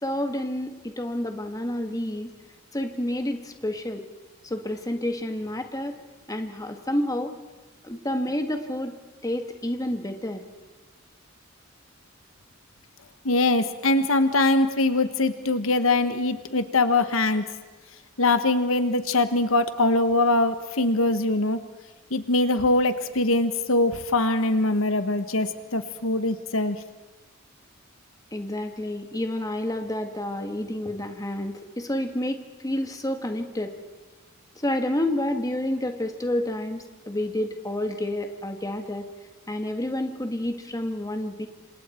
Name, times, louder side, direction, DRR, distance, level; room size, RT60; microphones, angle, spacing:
voice 1, 0.0-2.3 2.7-4.0 4.4-6.0 6.3-7.4 7.8-9.0 9.2-10.4 28.3-33.7 34.6-39.1 39.5-41.5, left 1 dB, 20° left, 6 dB, 1.8 m, -29 dB
voice 2, 13.2-17.5 18.2-21.6 22.1-26.8, left 2 dB, 85° left, 10 dB, 1.3 m, -22 dB
27.5 x 27.0 x 4.5 m, 1.1 s
head